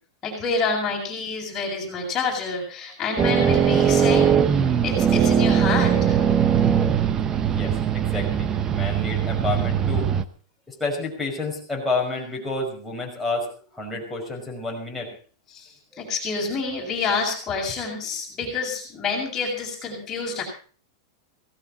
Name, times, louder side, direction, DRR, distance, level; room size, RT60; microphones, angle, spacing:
voice 1, 0.2-4.3 4.8-6.2 15.5-15.7 16.0-20.4, left 4 dB, 20° left, -1 dB, 7.4 m, -28 dB
sound 1, 3.2-10.2, right 8 dB, 20° right, 0.8 m, -20 dB
voice 2, 7.5-10.1 10.7-15.1 15.9-16.0, left 3 dB, ahead, -3 dB, 5.4 m, -30 dB
18.0 x 16.0 x 4.3 m, 0.41 s
supercardioid pair, 165°, 2 cm